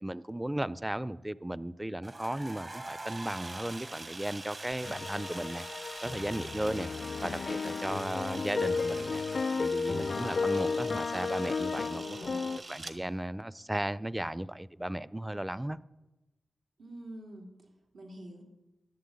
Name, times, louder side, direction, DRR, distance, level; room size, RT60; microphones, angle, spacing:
voice 1, 0.0-5.6 6.0-6.9 7.2-9.2 9.5-12.2 12.4-15.8, right 1 dB, 10° right, 0.4 m, -35 dB
sound 1, 2.0-11.8, right 2 dB, 30° right, 0.9 m, -47 dB
Camera, 3.1-13.0, right 3 dB, 55° right, 1.4 m, -47 dB
sound 2, 4.8-12.6, left 4 dB, 60° left, 0.3 m, -33 dB
voice 2, 11.6-12.6 16.8-18.4, right 1 dB, 90° right, 3.0 m, -47 dB
11.0 x 7.7 x 8.5 m
wide cardioid pair, 75°, 0 cm